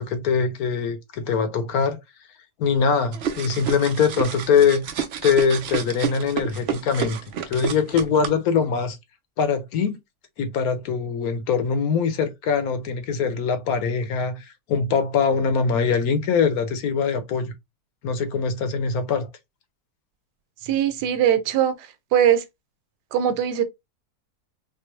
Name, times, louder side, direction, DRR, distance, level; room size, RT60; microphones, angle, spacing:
voice 1, 0.0-2.0 2.6-4.8 5.2-7.2 7.5-9.0 9.4-10.0 10.4-17.5 18.0-19.3, left 6 dB, 70° left, 1.1 m, -22 dB
sound 1, 3.1-8.3, right 7 dB, 70° right, 0.6 m, -30 dB
voice 2, 20.6-21.7 22.1-22.4 23.1-23.6, right 10 dB, 90° right, 1.2 m, -20 dB
4.4 x 2.0 x 3.1 m
omnidirectional pair, 1.7 m